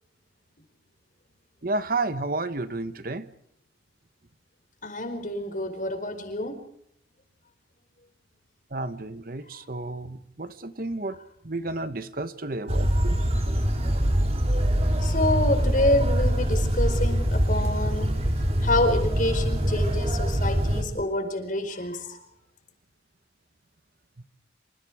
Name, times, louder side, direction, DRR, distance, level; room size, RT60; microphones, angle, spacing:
voice 1, 1.6-3.2 8.7-11.2 11.4-13.2, right 2 dB, 55° right, 1.2 m, -31 dB
voice 2, 4.8-6.6 15.0-18.2 18.6-22.2, left 1 dB, 45° left, 4.8 m, -27 dB
sound 1, 12.7-20.8, equal, 35° right, 3.6 m, -24 dB
27.0 x 26.5 x 4.9 m
head